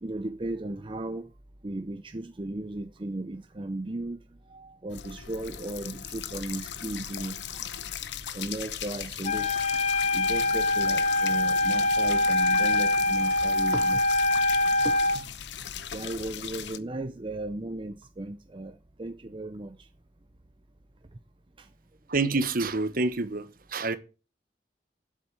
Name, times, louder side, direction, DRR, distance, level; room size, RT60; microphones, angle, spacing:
voice 1, 0.0-1.3 1.6-4.2 4.5-7.6 8.3-9.6 10.1-14.0 14.8-15.0 15.9-19.9 21.6-21.7, right 2 dB, 30° right, 0.7 m, -36 dB
sound 1, 4.9-16.8, left 9 dB, 85° left, 0.8 m, -38 dB
Wind instrument woodwind instrument, 9.2-15.2, left 2 dB, 40° left, 0.9 m, -24 dB
voice 2, 22.1-24.0, right 3 dB, 55° right, 1.2 m, -27 dB
7.9 x 7.4 x 8.6 m
head